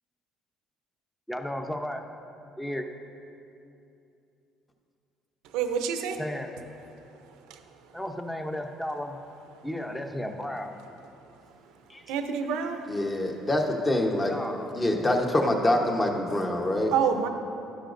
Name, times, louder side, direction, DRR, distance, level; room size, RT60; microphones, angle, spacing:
voice 1, 1.3-2.0 2.6-2.9 6.2-6.7 7.9-9.2 9.6-10.8 14.3-14.8, left 1 dB, 5° left, 5 dB, 0.7 m, -34 dB
voice 2, 5.5-6.2 7.5-7.6 12.1-12.8 16.9-17.3, right 7 dB, 85° right, 7 dB, 0.6 m, -27 dB
voice 3, 12.9-14.3 14.7-16.9, left 1 dB, 25° left, 2 dB, 1.1 m, -25 dB
12.5 x 10.0 x 2.6 m, 2.7 s
cardioid pair, 95°, 0 cm